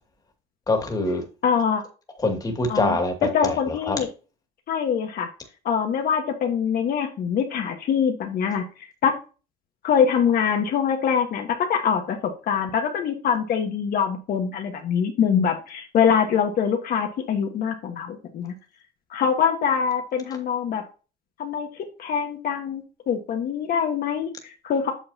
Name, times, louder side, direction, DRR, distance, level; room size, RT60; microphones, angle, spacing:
voice 1, 0.7-1.2 2.2-3.1 3.4-4.0, left 2 dB, 20° left, 3 dB, 2.3 m, -24 dB
voice 2, 1.4-1.8 2.7-3.0 3.2-4.1 4.7-5.3 5.6-8.6 9.0-9.1 9.8-18.5 19.1-20.8 21.4-24.9, left 7 dB, 60° left, 3 dB, 1.5 m, -24 dB
8.6 x 6.5 x 2.8 m, 0.33 s
cardioid pair, 110°, 17 cm